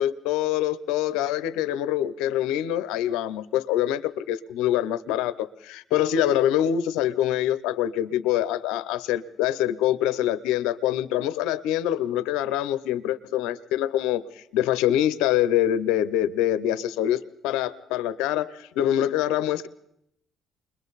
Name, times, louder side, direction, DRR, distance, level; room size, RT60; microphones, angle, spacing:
voice 1, 0.0-19.7, left 12 dB, 85° left, 14 dB, 0.8 m, -25 dB
29.0 x 22.0 x 4.1 m, 0.77 s
supercardioid pair, 70°, 0 cm